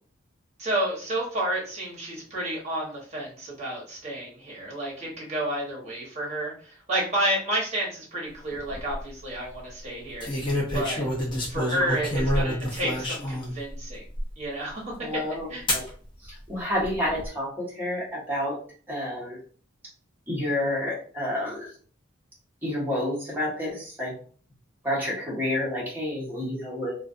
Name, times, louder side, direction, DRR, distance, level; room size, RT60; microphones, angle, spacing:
voice 1, 0.6-11.1 11.5-14.0 14.4-14.9 15.5-15.6, right 1 dB, 35° right, -4 dB, 1.1 m, -30 dB
sound 1, 8.5-9.0 10.2-13.5 14.2-14.3 15.7-15.9 16.8-17.3, equal, 25° left, 0.7 m, -27 dB
voice 2, 15.0-15.5 15.7-15.9 16.2-18.5 18.9-19.4 20.3-21.7 22.6-24.1 24.8-26.9, left 1 dB, 10° right, -6 dB, 1.0 m, -29 dB
2.4 x 2.3 x 2.5 m, 0.43 s
head